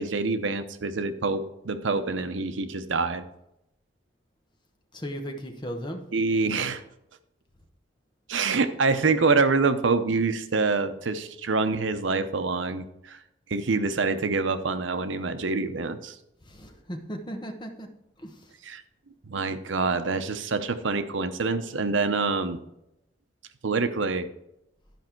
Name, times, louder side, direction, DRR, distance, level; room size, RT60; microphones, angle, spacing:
voice 1, 0.0-3.2 6.1-6.8 8.3-13.2 13.5-16.2 18.6-18.8 19.3-22.6 23.6-24.3, right 4 dB, 85° right, 10 dB, 0.7 m, -26 dB
voice 2, 4.9-6.0 16.5-17.9 18.2-18.3, equal, 25° left, 3 dB, 1.0 m, -36 dB
12.0 x 5.3 x 4.5 m, 0.85 s
head